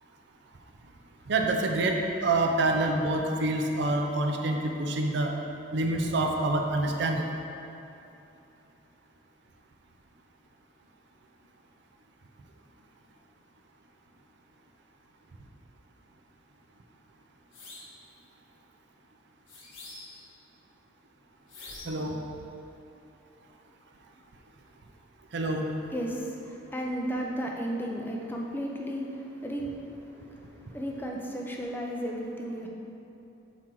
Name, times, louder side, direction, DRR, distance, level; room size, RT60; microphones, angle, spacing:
voice 1, 1.3-5.3 5.7-7.2 21.8-22.2 25.3-25.7, right 2 dB, 60° right, 2 dB, 0.5 m, -27 dB
sound 1, 17.5-18.0 19.5-20.3 21.5-22.1, left 2 dB, 75° left, 1.1 m, -46 dB
voice 2, 25.9-32.7, equal, 10° left, -1 dB, 0.5 m, -34 dB
6.1 x 4.4 x 3.8 m, 2.8 s
head